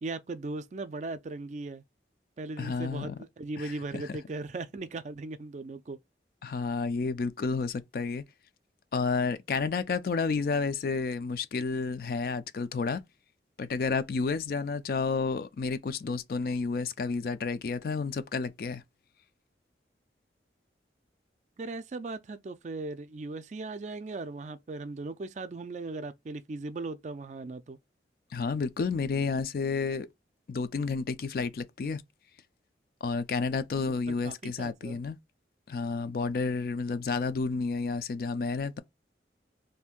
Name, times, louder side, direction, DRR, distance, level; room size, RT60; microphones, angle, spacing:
voice 1, 0.0-1.8 2.4-6.0 21.6-27.8 33.9-35.0, right 3 dB, 40° right, 0.3 m, -38 dB
voice 2, 2.6-3.2 3.6-4.2 6.4-8.2 8.9-13.0 13.6-18.8 28.3-30.1 30.5-32.0 33.0-35.2 35.7-38.8, left 4 dB, 55° left, 0.3 m, -31 dB
2.7 x 2.5 x 3.6 m
head